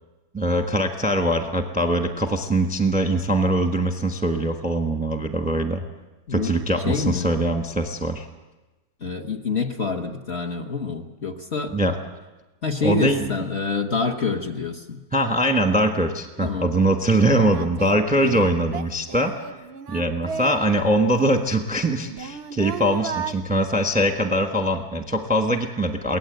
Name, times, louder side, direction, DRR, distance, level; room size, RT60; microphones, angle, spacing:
voice 1, 0.3-5.8 6.3-8.3 11.7-12.0 12.8-13.3 15.1-19.3 19.9-26.2, right 1 dB, 5° right, 6 dB, 0.9 m, -22 dB
voice 2, 6.3-6.6 6.8-7.3 9.0-11.8 12.6-15.0 16.4-16.7 17.3-17.5 18.2-18.4, left 4 dB, 40° left, 3 dB, 1.2 m, -27 dB
Singing, 16.9-17.0 17.5-20.7 21.0-23.3, right 6 dB, 50° right, 0.8 m, -34 dB
23.0 x 17.5 x 7.9 m, 1.1 s
omnidirectional pair, 1.9 m